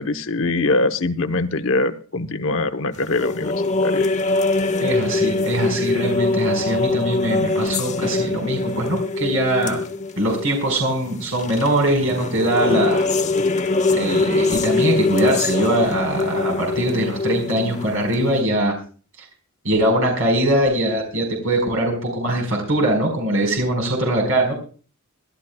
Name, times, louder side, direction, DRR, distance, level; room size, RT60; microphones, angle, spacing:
voice 1, 0.0-4.1, left 2 dB, 60° left, 8 dB, 0.9 m, -23 dB
sound 1, 3.0-18.4, left 3 dB, 35° left, 0.9 m, -23 dB
voice 2, 4.8-9.8 10.2-13.1 13.9-18.8 19.6-24.5, right 1 dB, 70° right, 2 dB, 4.7 m, -21 dB
25.5 x 12.0 x 2.3 m, 0.39 s
head